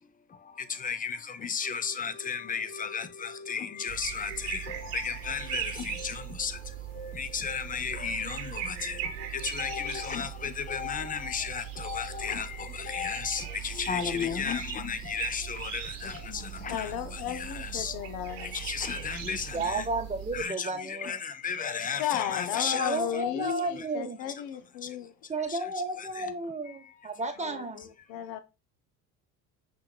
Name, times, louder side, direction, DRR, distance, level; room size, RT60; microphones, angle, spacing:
voice 1, 0.0-19.9 20.3-23.5 24.8-25.1 25.5-25.6 26.0-26.3 26.8-26.9, left 6 dB, 20° left, 0.4 m, -34 dB
sound 1, 3.9-20.4, right 11 dB, 75° right, 0.9 m, -39 dB
voice 2, 16.7-18.6 22.0-23.6 23.9-25.1 27.4-27.6 28.1-28.4, left 11 dB, 70° left, 0.6 m, -34 dB
voice 3, 19.5-21.2 22.7-24.2 25.3-27.8, right 2 dB, 15° right, 0.9 m, -32 dB
5.5 x 3.2 x 2.2 m
hypercardioid pair, 60°, 47 cm